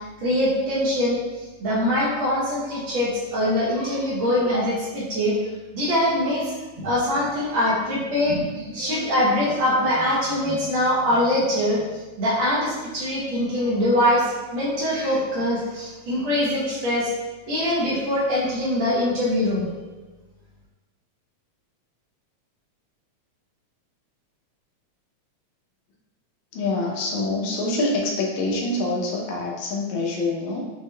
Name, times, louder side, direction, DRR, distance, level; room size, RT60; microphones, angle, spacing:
voice 1, 0.2-1.2 1.6-5.3 5.7-11.8 12.2-17.1 17.5-19.7, left 1 dB, 80° right, -7 dB, 1.1 m, -23 dB
voice 2, 26.5-30.6, left 2 dB, 80° left, -1 dB, 2.1 m, -25 dB
6.5 x 3.0 x 2.2 m, 1.2 s
omnidirectional pair, 3.3 m